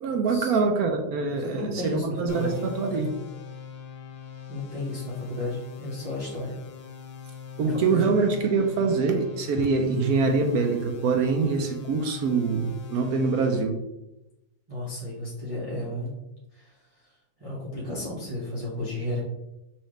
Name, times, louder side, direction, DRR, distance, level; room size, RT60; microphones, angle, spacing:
voice 1, 0.0-3.1 7.6-13.8, right 4 dB, 70° right, 3 dB, 1.0 m, -24 dB
voice 2, 1.5-2.5 4.5-6.6 7.6-8.1 14.7-16.2 16.5-17.1 17.4-19.2, left 1 dB, 25° right, -8 dB, 1.0 m, -33 dB
sound 1, 2.3-13.6, left 7 dB, 85° left, 1.4 m, -41 dB
5.7 x 2.8 x 3.2 m, 0.92 s
omnidirectional pair, 1.9 m